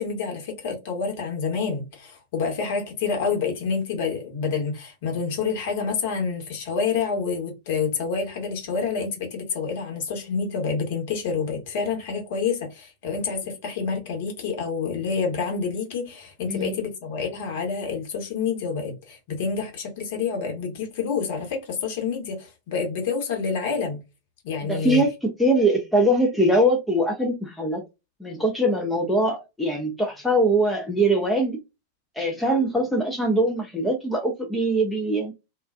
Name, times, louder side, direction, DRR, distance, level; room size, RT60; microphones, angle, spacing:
voice 1, 0.0-24.0 24.4-25.0, left 5 dB, 50° left, 1.0 m, -28 dB
voice 2, 24.6-27.8 28.2-31.6 32.2-35.3, right 1 dB, 5° left, 0.5 m, -22 dB
2.3 x 2.3 x 2.3 m
figure-of-eight pair, 90°, 0 cm